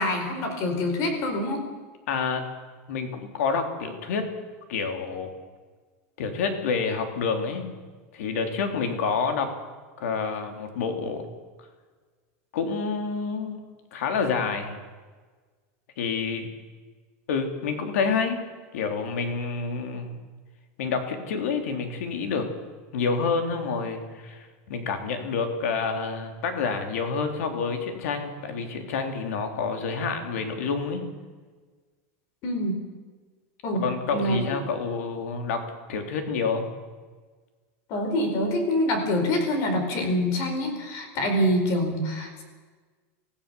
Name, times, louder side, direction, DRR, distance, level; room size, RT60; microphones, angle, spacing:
voice 1, 0.0-1.6 32.4-32.8 33.6-33.8 34.1-34.4 37.9-42.4, left 1 dB, 45° left, 5 dB, 4.7 m, -25 dB
voice 2, 2.1-2.5 2.9-4.3 4.7-5.3 6.2-7.7 8.1-9.5 10.0-11.2 12.5-13.6 13.9-14.8 16.0-16.5 17.3-18.4 18.7-20.2 20.8-22.5 22.9-31.0 33.8-35.6 35.9-36.7, left 5 dB, 85° left, 5 dB, 3.5 m, -28 dB
24.5 x 16.0 x 7.0 m, 1.4 s
supercardioid pair, 160°, 8 cm